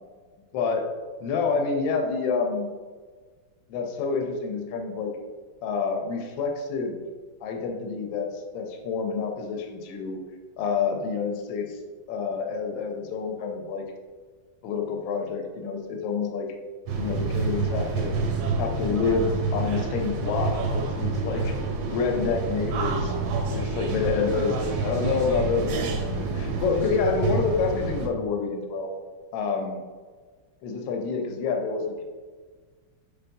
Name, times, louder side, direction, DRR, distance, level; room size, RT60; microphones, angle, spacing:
voice 1, 0.5-0.9 1.2-2.7 3.7-5.1 5.6-7.0 7.4-10.2 10.6-11.8 12.1-13.8 14.6-16.5 17.0-18.1 18.6-21.5 21.9-23.2 23.5-28.9 29.3-29.8 30.6-32.0, left 5 dB, 75° left, 3 dB, 1.3 m, -28 dB
sound 1, 16.9-28.1, right 3 dB, 85° right, 1.4 m, -28 dB
4.5 x 3.4 x 2.6 m, 1.4 s
omnidirectional pair, 2.2 m